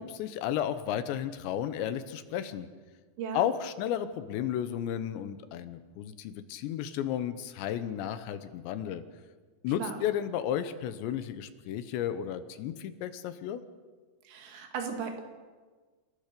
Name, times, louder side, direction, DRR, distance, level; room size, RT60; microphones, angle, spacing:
voice 1, 0.0-2.7 3.3-9.0 9.6-13.6, left 10 dB, 80° left, 11 dB, 3.1 m, -33 dB
voice 2, 14.3-15.2, right 6 dB, 80° right, 4 dB, 4.4 m, -36 dB
28.0 x 14.0 x 6.8 m, 1.4 s
omnidirectional pair, 5.2 m